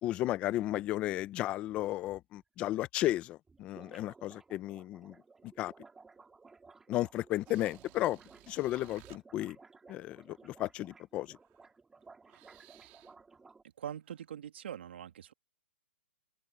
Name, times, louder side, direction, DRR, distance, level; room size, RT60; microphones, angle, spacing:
voice 1, 0.0-5.2 5.6-5.7 6.9-8.2 8.5-9.6 9.9-11.4, left 15 dB, 20° left, 0.7 m, -34 dB
sound 1, 2.4-2.5 2.7-2.8 3.0-3.1 3.3-13.6, right 4 dB, 5° right, 4.1 m, -57 dB
sound 2, 7.4-9.2 11.4-11.6 12.0-13.2 14.0-14.2, right 20 dB, 25° right, 2.8 m, -58 dB
voice 2, 13.8-15.3, right 9 dB, 65° right, 2.7 m, -43 dB
open air
hypercardioid pair, 170°, 7 cm